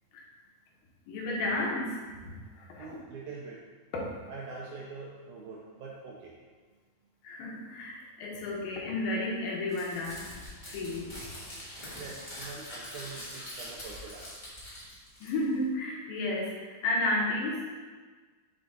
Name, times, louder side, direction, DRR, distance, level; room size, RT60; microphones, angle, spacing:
voice 1, 1.1-2.0 2.2-3.0 7.2-10.3 10.7-11.1 15.2-17.8, left 2 dB, 85° left, -2 dB, 2.8 m, -32 dB
voice 2, 2.8-3.6 4.3-6.4 12.0-14.5, right 4 dB, 80° right, -3 dB, 1.8 m, -44 dB
Crumpling crinkling, 9.7-15.6, left 1 dB, 35° left, 0.7 m, -44 dB
7.6 x 3.6 x 3.9 m, 1.4 s
omnidirectional pair, 4.1 m